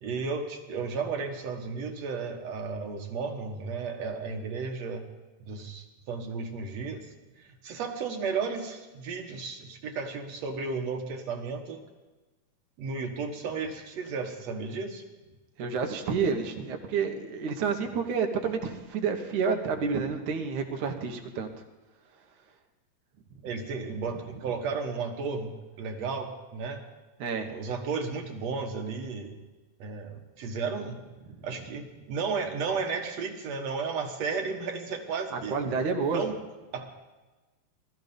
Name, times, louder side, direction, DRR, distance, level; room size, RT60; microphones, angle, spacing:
voice 1, 0.0-5.0 5.4-7.1 7.4-11.9 12.8-15.0 23.4-26.8 27.5-29.4 29.8-31.0 31.4-35.6 36.1-36.3 36.7-36.9, right 5 dB, 65° right, 4 dB, 2.5 m, -33 dB
voice 2, 15.6-21.5 27.2-27.5 35.3-36.2, right 5 dB, 85° right, 4 dB, 2.9 m, -29 dB
19.5 x 13.5 x 5.3 m, 1.2 s
omnidirectional pair, 3.4 m